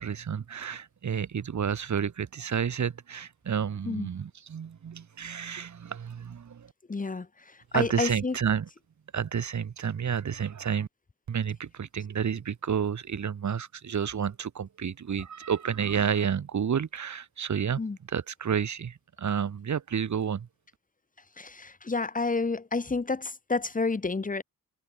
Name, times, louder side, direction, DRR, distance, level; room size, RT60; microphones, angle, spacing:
voice 1, 0.0-6.7 7.7-8.7 9.1-10.9 11.3-17.8 18.1-20.5, right 7 dB, 50° right, 6.0 m, -30 dB
voice 2, 6.9-8.3 17.8-18.0 21.4-24.4, left 3 dB, 20° left, 3.0 m, -30 dB
wide cardioid pair, 160°, 36 cm